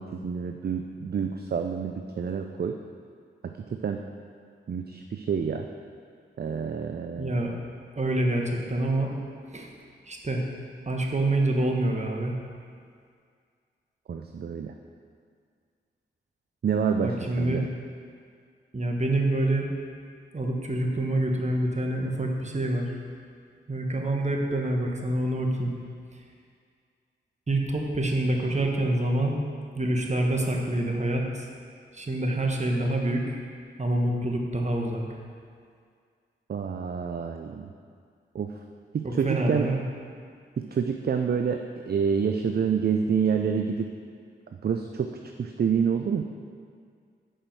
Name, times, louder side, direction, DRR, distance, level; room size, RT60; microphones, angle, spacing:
voice 1, 0.0-2.8 3.4-4.0 4.7-5.7 6.4-7.4 14.1-14.7 16.6-17.7 36.5-37.7 38.3-38.5 38.9-39.7 40.6-43.9 44.5-45.1 45.4-46.2, right 6 dB, 55° right, 5 dB, 0.5 m, -28 dB
voice 2, 7.2-7.5 8.0-9.1 9.5-9.7 10.1-10.4 10.9-12.3 17.0-17.6 18.7-19.7 20.3-22.9 23.7-25.7 27.5-29.4 29.7-31.5 31.9-33.4 33.8-35.0 39.0-39.8, right 1 dB, 35° right, 1 dB, 1.3 m, -26 dB
8.9 x 5.1 x 6.1 m, 2.2 s
cardioid pair, 65°, 20 cm